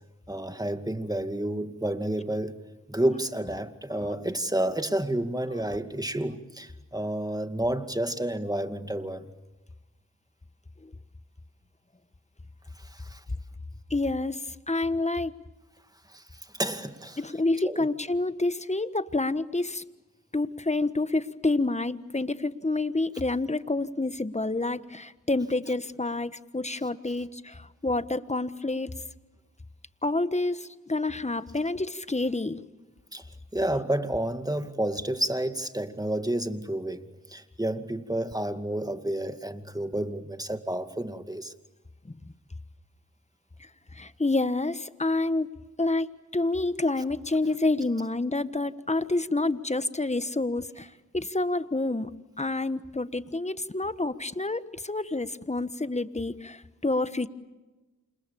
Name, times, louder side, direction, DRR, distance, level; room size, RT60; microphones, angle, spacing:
voice 1, 0.3-2.6 2.9-9.2 12.8-13.2 16.1-16.2 16.5-17.2 17.6-17.9 33.1-41.5, right 1 dB, 10° right, 2.3 m, -30 dB
voice 2, 13.9-15.3 17.2-19.8 20.3-28.9 30.0-32.6 42.0-42.1 43.9-45.5 45.8-52.1 52.4-57.3, left 2 dB, 20° left, 1.4 m, -28 dB
29.0 x 27.0 x 7.1 m
cardioid pair, 40°, 33 cm